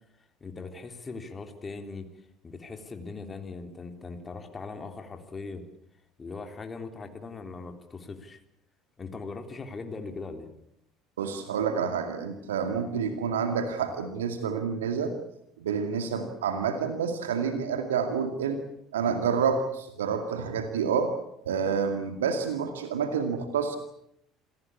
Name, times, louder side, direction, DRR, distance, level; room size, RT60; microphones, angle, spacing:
voice 1, 0.4-5.7 6.2-8.4 9.0-10.5, left 4 dB, 25° left, 6 dB, 3.5 m, -40 dB
voice 2, 11.2-15.1 15.6-18.6 18.9-21.1 21.5-23.8, right 6 dB, 75° right, 7 dB, 2.2 m, -28 dB
27.0 x 18.5 x 8.5 m, 0.75 s
figure-of-eight pair, 60°, 0 cm